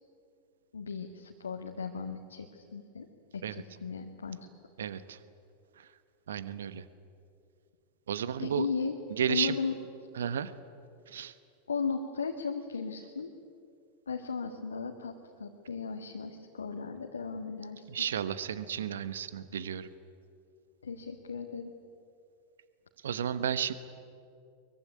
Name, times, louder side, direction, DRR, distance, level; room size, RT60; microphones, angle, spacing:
voice 1, 0.7-3.1 3.3-4.4 8.4-9.0 9.3-9.7 11.7-13.3 14.1-18.1 20.8-21.7, left 5 dB, 70° left, 2 dB, 1.7 m, -36 dB
voice 2, 4.8-5.2 5.8-5.9 6.3-6.8 8.1-8.7 9.2-9.6 10.1-10.5 11.1-11.3 17.9-19.9 23.0-23.7, right 8 dB, 65° right, 15 dB, 1.1 m, -33 dB
23.0 x 23.0 x 9.7 m, 2.4 s
figure-of-eight pair, 90°, 0 cm